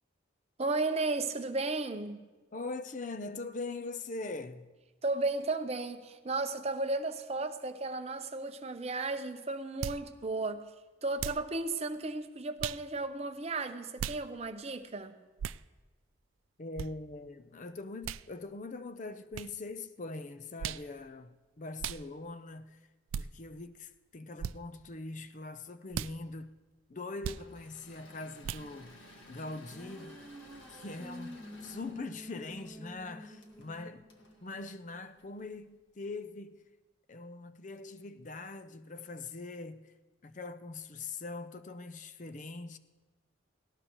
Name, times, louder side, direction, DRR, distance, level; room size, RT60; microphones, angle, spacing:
voice 1, 0.6-2.2 5.0-10.6 11.0-15.1, right 3 dB, 30° right, 0.7 m, -34 dB
voice 2, 2.5-4.7 16.6-22.8 23.1-26.5 26.9-30.2 30.7-34.1 34.4-36.7 37.1-39.9 40.2-42.8, left 3 dB, 40° left, 0.5 m, -42 dB
sound 1, 9.8-10.0 11.2-11.5 12.6-12.8 14.0-14.2 15.4-15.6 16.8-16.9 18.0-18.2 19.3-19.5 20.6-20.9 21.8-22.0 23.1-23.3 24.4-24.6 25.9-26.1 27.2-27.4 28.4-28.7, right 8 dB, 80° right, 0.3 m, -37 dB
Engine / Mechanisms, 27.2-35.6, left 1 dB, 70° left, 1.8 m, -57 dB
sound 2, 28.8-35.3, equal, 5° left, 1.9 m, -50 dB
18.5 x 17.0 x 3.0 m
head